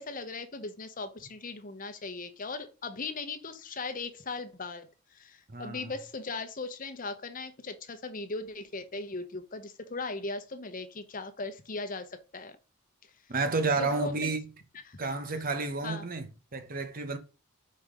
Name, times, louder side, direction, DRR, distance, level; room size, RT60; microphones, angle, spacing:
voice 1, 0.0-12.6 13.8-14.3 14.9-15.0 15.8-16.0, left 3 dB, 40° left, 0.8 m, -38 dB
voice 2, 5.5-5.9 13.3-14.5 15.0-17.2, right 3 dB, 40° right, 0.9 m, -31 dB
5.3 x 4.3 x 4.9 m
head